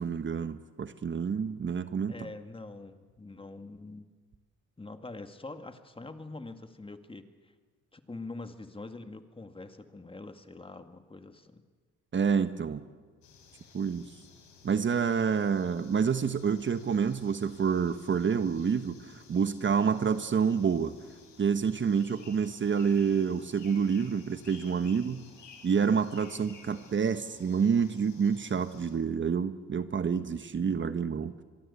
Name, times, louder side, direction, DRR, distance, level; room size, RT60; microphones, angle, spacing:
voice 1, 0.0-2.2 12.1-12.8 13.7-14.0 14.6-20.9 21.4-25.2 25.6-31.3, right 6 dB, 40° right, 10 dB, 1.3 m, -28 dB
voice 2, 2.1-4.1 4.8-7.5 7.9-11.6, left 2 dB, 15° left, 8 dB, 1.9 m, -44 dB
sound 1, 13.2-28.9, left 5 dB, 75° left, 5.8 m, -55 dB
25.0 x 23.0 x 8.4 m, 1.5 s
cardioid pair, 90°, 30 cm